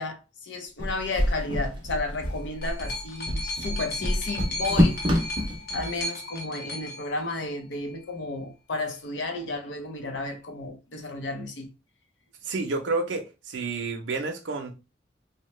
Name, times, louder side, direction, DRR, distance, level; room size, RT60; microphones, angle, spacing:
voice 1, 0.0-5.0 5.7-11.7, left 3 dB, 85° left, 0.6 m, -33 dB
sound 1, 0.8-5.9, equal, 25° right, 0.6 m, -26 dB
sound 2, 2.0-7.9 8.8-8.9, left 1 dB, 55° left, 0.8 m, -36 dB
voice 2, 12.4-14.8, right 3 dB, 80° right, 0.6 m, -30 dB
2.8 x 2.1 x 3.1 m
head